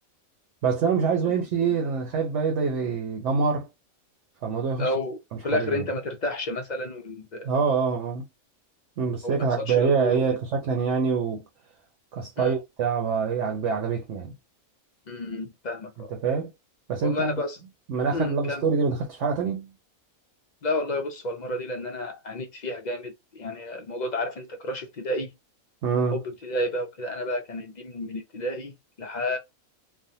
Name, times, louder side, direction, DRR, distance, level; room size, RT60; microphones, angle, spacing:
voice 1, 0.6-3.7 4.4-4.9 5.5-5.8 7.4-8.3 9.0-11.4 12.1-14.3 16.1-16.5 16.9-17.4 17.9-19.7 25.8-26.2, right 5 dB, 60° right, 1.0 m, -25 dB
voice 2, 4.8-7.5 9.2-10.2 12.4-12.5 15.1-16.1 17.0-17.6 18.1-18.6 20.6-25.3 26.1-29.4, left 1 dB, 55° left, 0.4 m, -31 dB
3.4 x 2.1 x 2.7 m
omnidirectional pair, 1.5 m